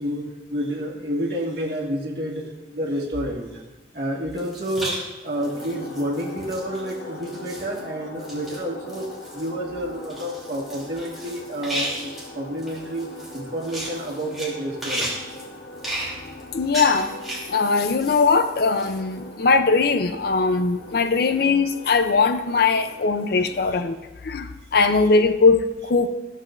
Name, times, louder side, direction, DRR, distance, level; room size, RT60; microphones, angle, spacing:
voice 1, 0.0-3.6 3.9-15.3, equal, 60° right, -4 dB, 1.7 m, -29 dB
sound 1, 4.4-5.0 5.3-6.9 7.2-7.8 8.2-8.6 8.9-9.5 10.0-12.3 12.6-14.5 14.8-18.2 18.5-19.0, right 1 dB, ahead, 2.9 m, -34 dB
sound 2, 5.4-23.9, left 1 dB, 90° left, 1.1 m, -41 dB
voice 2, 16.5-17.2 17.5-24.0 24.2-26.1, left 4 dB, 60° left, 9 dB, 0.5 m, -20 dB
14.5 x 7.3 x 2.5 m, 1.1 s
head